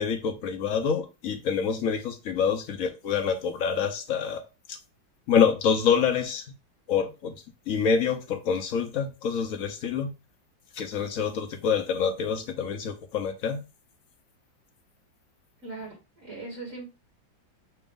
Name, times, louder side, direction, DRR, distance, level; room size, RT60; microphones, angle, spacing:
voice 1, 0.0-4.4 4.7-4.8 5.3-6.4 6.9-7.3 7.7-10.1 10.8-13.6, left 6 dB, 65° left, 0.8 m, -26 dB
voice 2, 15.6-16.9, right 3 dB, 45° right, 1.7 m, -40 dB
5.9 x 2.5 x 3.5 m
omnidirectional pair, 2.1 m